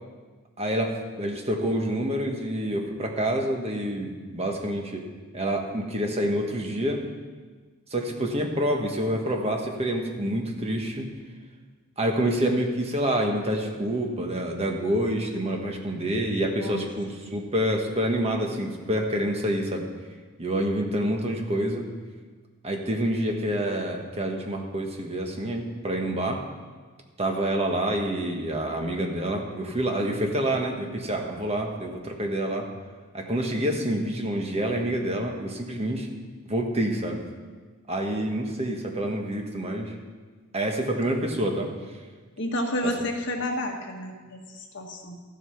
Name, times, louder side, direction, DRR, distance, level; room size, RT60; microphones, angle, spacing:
voice 1, 0.6-5.1 5.3-7.0 7.9-11.1 12.0-19.9 20.4-21.8 22.6-26.4 27.2-32.7 33.1-36.1 36.5-37.2 37.9-39.9 40.5-41.7, right 1 dB, 30° right, 2 dB, 1.4 m, -27 dB
voice 2, 16.4-16.8 42.4-45.2, left 1 dB, 55° left, 2 dB, 1.5 m, -31 dB
14.0 x 8.1 x 5.8 m, 1.4 s
head